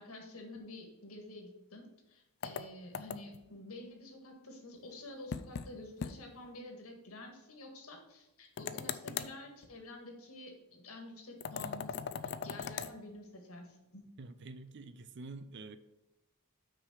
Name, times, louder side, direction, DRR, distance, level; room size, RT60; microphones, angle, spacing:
voice 1, 0.0-14.0, left 2 dB, 70° left, 3 dB, 1.8 m, -49 dB
sound 1, 2.4-3.5 5.3-5.7 6.0-6.1 6.5-6.6 8.6-9.4 11.4-12.9, left 6 dB, 50° left, 0.4 m, -39 dB
voice 2, 14.2-15.8, right 3 dB, 50° right, 12 dB, 0.5 m, -47 dB
6.1 x 4.8 x 6.4 m, 0.95 s
head